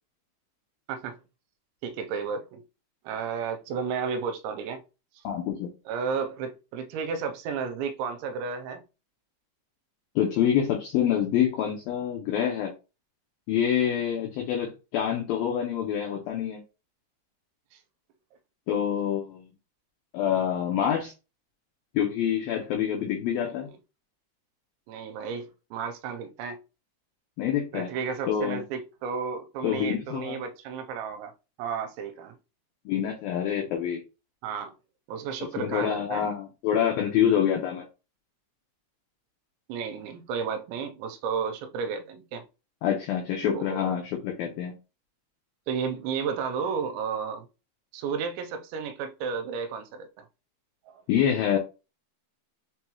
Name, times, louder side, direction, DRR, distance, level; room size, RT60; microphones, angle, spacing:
voice 1, 1.8-2.6 3.0-4.8 5.9-8.8 23.3-23.7 24.9-26.6 27.7-31.3 31.6-32.4 34.4-34.7 35.1-36.3 39.7-42.5 43.4-44.0 45.7-47.5 47.9-50.3 50.9-51.0, right 6 dB, 85° right, 2.8 m, -33 dB
voice 2, 5.2-5.7 10.2-12.7 13.5-16.6 18.7-19.5 20.1-21.1 21.9-23.7 27.4-27.9 28.3-28.6 29.6-30.4 32.9-34.0 35.6-37.9 42.8-44.8 51.1-51.6, left 9 dB, 90° left, 2.0 m, -26 dB
6.9 x 2.3 x 3.0 m
omnidirectional pair, 5.2 m